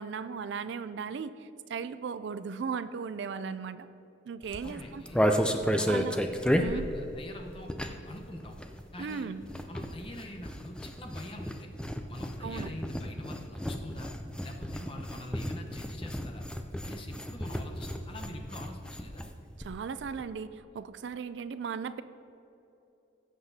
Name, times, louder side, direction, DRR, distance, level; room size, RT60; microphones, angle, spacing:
voice 1, 0.0-3.9 4.3-5.0 5.9-6.2 6.6-6.9 9.0-9.4 12.4-12.7 19.6-22.0, right 6 dB, 70° right, 13 dB, 0.4 m, -37 dB
sound 1, 4.4-8.2 8.4-19.3 19.6-19.7 19.9-20.2, equal, 5° left, 0.4 m, -32 dB
voice 2, 4.6-5.2 5.7-6.1 6.7-8.6 8.9-9.3 9.7-11.7 12.1-14.1 14.4-16.4 16.8-19.3, left 1 dB, 30° left, 2 dB, 0.9 m, -44 dB
16.5 x 7.7 x 2.8 m, 2.9 s
head